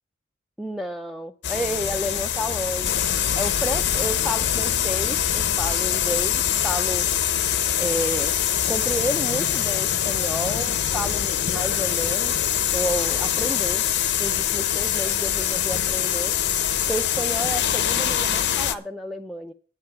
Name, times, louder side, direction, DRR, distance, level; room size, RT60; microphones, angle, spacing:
voice 1, 0.6-3.0 3.4-7.1 7.8-8.3 8.7-12.3 12.7-13.8 14.2-16.3 16.9-19.5, equal, ahead, 2 dB, 0.5 m, -31 dB
sound 1, 1.4-18.8, left 10 dB, 55° left, 0.7 m, -24 dB
11.0 x 8.4 x 5.7 m, 0.39 s
head